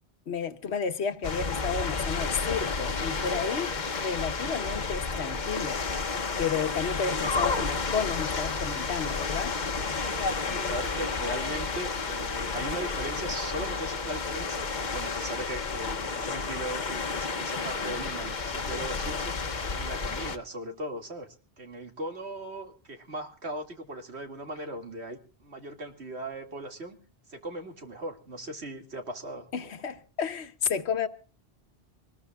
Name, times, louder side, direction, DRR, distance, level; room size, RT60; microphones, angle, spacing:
voice 1, 0.3-9.5 29.5-31.1, left 6 dB, 80° left, 1.4 m, -32 dB
sound 1, 1.2-20.4, left 4 dB, 45° left, 1.1 m, -31 dB
voice 2, 10.5-19.3 19.7-27.0 27.3-29.7, right 1 dB, 85° right, 2.6 m, -38 dB
24.0 x 20.0 x 2.4 m
omnidirectional pair, 1.1 m